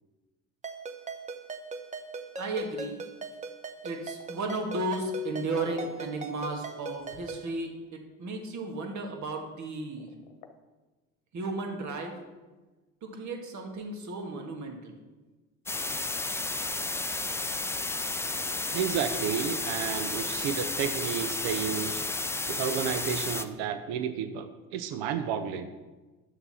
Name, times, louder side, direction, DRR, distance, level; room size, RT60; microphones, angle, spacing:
Ringtone, 0.6-7.5, right 4 dB, 15° right, 0.9 m, -40 dB
voice 1, 2.4-3.0 3.8-10.1 11.3-12.2 13.0-14.9, right 2 dB, 45° right, 3 dB, 1.9 m, -34 dB
sound 1, 4.2-7.9 10.0-10.5, left 6 dB, 55° left, 1.1 m, -47 dB
sound 2, 15.7-23.4, left 2 dB, 5° left, 0.5 m, -32 dB
voice 2, 18.7-22.0 22.5-25.7, right 8 dB, 60° right, 10 dB, 0.8 m, -31 dB
11.0 x 6.7 x 4.2 m, 1.2 s
hypercardioid pair, 65°, 42 cm